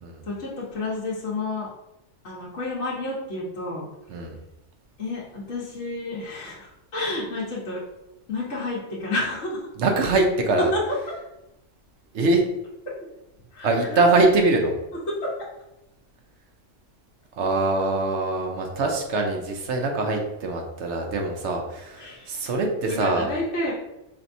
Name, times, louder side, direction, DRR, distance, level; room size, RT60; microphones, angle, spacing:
voice 1, 0.2-1.7 2.2-3.9 5.0-7.8 8.3-9.6 10.7-10.8 13.5-14.0 15.2-15.3 22.0-22.3 22.9-23.7, left 2 dB, 70° left, -7 dB, 1.4 m, -30 dB
voice 2, 9.8-10.7 12.1-12.5 13.6-14.8 17.3-23.3, right 3 dB, 70° right, 3 dB, 1.0 m, -23 dB
4.5 x 3.4 x 2.6 m, 0.92 s
omnidirectional pair, 1.3 m